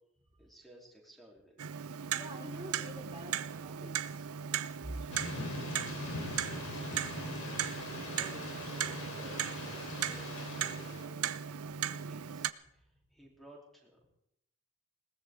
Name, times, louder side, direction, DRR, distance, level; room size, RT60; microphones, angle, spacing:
voice 1, 0.4-1.7 7.5-14.0, equal, ahead, -2 dB, 3.4 m, -56 dB
Clock, 1.6-12.5, right 9 dB, 90° right, 0.6 m, -38 dB
voice 2, 2.1-4.3 4.8-5.0, right 1 dB, 20° right, -2 dB, 3.4 m, -45 dB
Thunder / Rain, 5.1-11.1, left 2 dB, 75° left, 3.5 m, -42 dB
20.5 x 18.5 x 3.7 m, 0.78 s
head